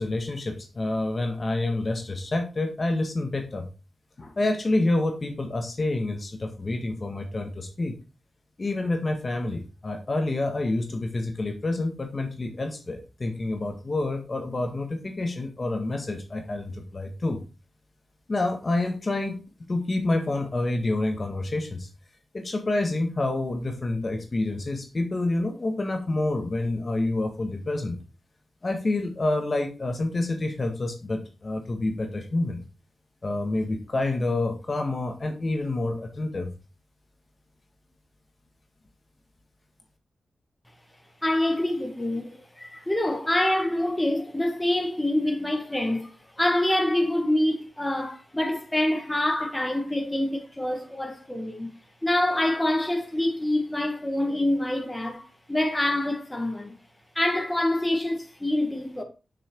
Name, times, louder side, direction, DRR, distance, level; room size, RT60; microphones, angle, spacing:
voice 1, 0.0-3.7 4.2-8.0 8.6-17.4 18.3-19.4 19.7-21.9 22.3-28.0 28.6-32.6 33.2-36.5, left 2 dB, 40° left, 1.7 m, -28 dB
voice 2, 41.2-51.7 52.0-56.8 57.2-59.0, left 1 dB, 15° left, 1.8 m, -26 dB
6.8 x 6.1 x 4.6 m
cardioid pair, 75°, 0 cm